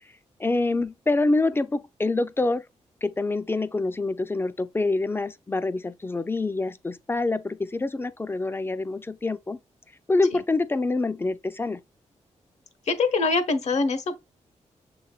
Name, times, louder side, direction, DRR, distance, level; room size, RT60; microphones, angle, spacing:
voice 1, 0.4-2.6 3.0-9.6 10.1-11.8, left 2 dB, 20° left, 0.4 m, -26 dB
voice 2, 12.9-14.2, left 4 dB, 65° left, 0.8 m, -24 dB
6.5 x 3.1 x 2.3 m
cardioid pair, 80°, 13 cm